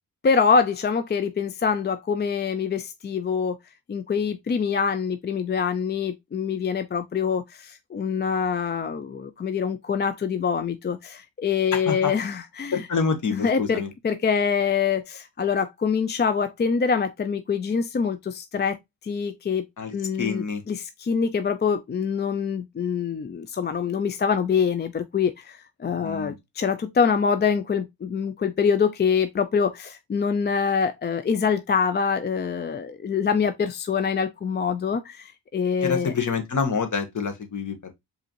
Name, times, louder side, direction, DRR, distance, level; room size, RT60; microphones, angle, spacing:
voice 1, 0.2-3.6 3.9-12.9 13.3-18.8 19.0-19.6 19.9-36.1, left 6 dB, 25° left, 0.4 m, -25 dB
voice 2, 11.7-12.1 12.7-13.9 19.8-20.6 26.0-26.4 35.8-37.9, left 5 dB, 45° left, 1.1 m, -27 dB
4.7 x 2.7 x 2.8 m
cardioid pair, 55°, 41 cm